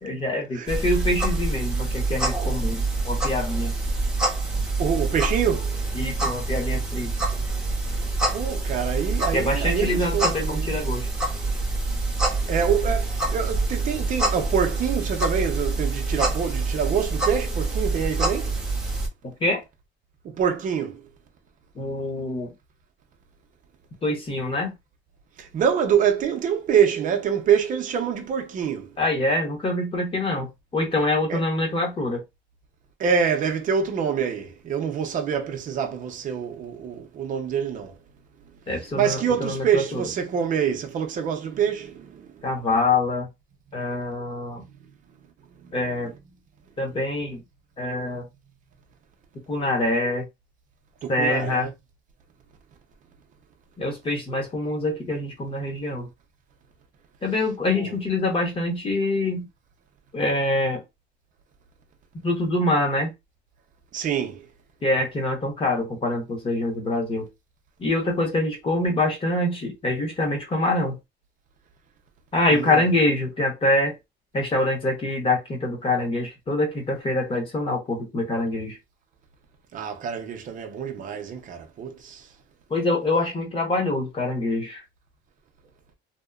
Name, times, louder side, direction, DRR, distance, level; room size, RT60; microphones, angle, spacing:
voice 1, 0.0-3.7 5.9-7.1 9.3-11.1 19.2-19.6 21.7-22.5 24.0-24.7 29.0-32.2 38.7-40.0 42.4-43.3 43.7-44.7 45.7-46.1 46.8-47.4 47.8-48.3 49.5-50.2 51.1-51.7 53.8-56.1 57.2-59.5 60.1-60.8 62.2-63.1 64.8-67.3 67.8-71.0 72.3-74.0 74.3-78.8 82.7-84.8, left 2 dB, 25° left, 0.9 m, -25 dB
sound 1, 0.7-19.1, right 2 dB, 5° right, 0.7 m, -26 dB
voice 2, 4.8-5.8 8.3-10.7 12.5-18.6 20.2-21.0 25.4-28.9 31.3-31.4 33.0-38.0 39.0-42.5 44.6-44.9 45.6-46.1 51.0-51.7 57.8-57.9 63.9-64.5 72.5-72.8 79.7-82.3, right 7 dB, 40° right, 0.6 m, -26 dB
2.8 x 2.1 x 2.3 m
cardioid pair, 160°, 20 cm